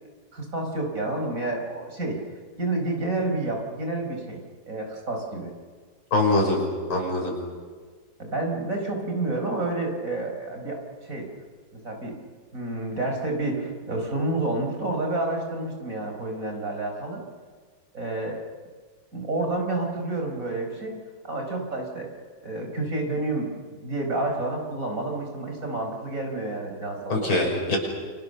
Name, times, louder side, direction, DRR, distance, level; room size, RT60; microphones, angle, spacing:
voice 1, 0.3-2.2 2.6-5.5 8.2-11.3 11.7-12.2 12.5-17.2 17.9-18.4 19.1-21.0 21.2-22.1 22.4-27.4, right 2 dB, 40° right, 2 dB, 5.4 m, -29 dB
voice 2, 6.1-6.6 6.9-7.3 27.1-27.8, left 2 dB, 90° left, 1 dB, 6.7 m, -23 dB
29.0 x 25.5 x 6.8 m, 1.5 s
omnidirectional pair, 2.2 m